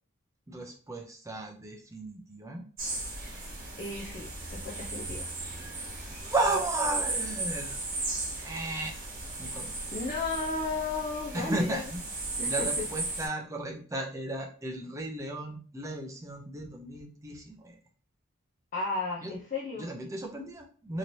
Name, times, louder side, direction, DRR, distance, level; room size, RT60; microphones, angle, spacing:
voice 1, 0.5-2.6 5.8-7.9 8.4-8.9 9.4-9.7 11.3-12.1 12.4-17.8 19.2-19.3 19.8-21.0, right 2 dB, 15° right, 2 dB, 0.5 m, -34 dB
sound 1, 2.8-13.3, right 2 dB, 40° right, 1.2 m, -36 dB
voice 2, 3.8-5.3 9.9-11.9 12.4-12.7 18.7-19.9, left 3 dB, 35° left, -4 dB, 0.5 m, -34 dB
3.0 x 2.9 x 2.7 m, 0.41 s
head